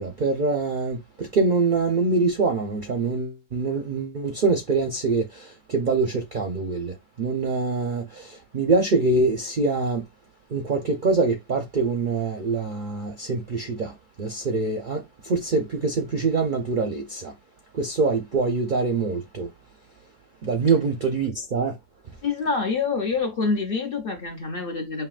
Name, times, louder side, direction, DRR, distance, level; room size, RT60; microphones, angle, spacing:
voice 1, 0.0-10.0 10.5-17.3 17.7-19.5 20.4-21.7, right 3 dB, 55° right, 0.6 m, -24 dB
voice 2, 22.2-25.1, left 4 dB, 50° left, 0.8 m, -26 dB
5.5 x 2.7 x 2.4 m
omnidirectional pair, 1.5 m